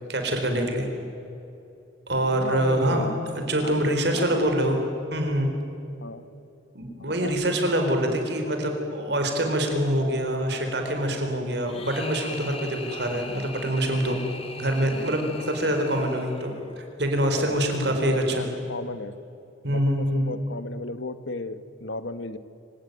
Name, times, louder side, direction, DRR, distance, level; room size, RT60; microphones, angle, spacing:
voice 1, 0.1-0.9 2.1-3.1 3.4-4.8 5.1-5.5 6.7-14.2 14.6-18.5 19.6-20.3, right 1 dB, 60° right, 4 dB, 4.3 m, -25 dB
voice 2, 2.3-3.1 3.6-4.5 6.0-6.2 7.0-7.4 17.4-19.1 19.7-22.4, left 2 dB, 75° left, 13 dB, 1.1 m, -34 dB
sound 1, 11.6-16.8, left 3 dB, 30° left, 1.7 m, -40 dB
26.0 x 17.0 x 9.4 m, 2.8 s
head